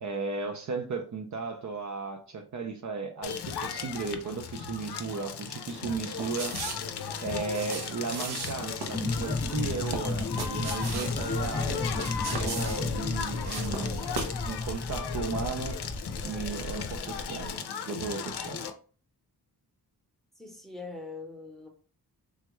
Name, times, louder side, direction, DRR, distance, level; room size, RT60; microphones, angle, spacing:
voice 1, 0.0-6.6 7.2-11.9 12.4-14.1 14.5-15.8 16.2-17.5 17.9-18.6, right 4 dB, 50° right, 0.4 m, -35 dB
Crackle, 3.2-18.7, left 6 dB, 85° left, 0.5 m, -36 dB
sound 1, 6.2-14.5 14.7-14.8, right 4 dB, 75° right, 0.7 m, -38 dB
sound 2, 8.9-17.5, left 3 dB, 20° left, 0.4 m, -33 dB
voice 2, 20.4-21.7, left 3 dB, ahead, 0.7 m, -42 dB
3.4 x 2.2 x 3.0 m
wide cardioid pair, 85°, 39 cm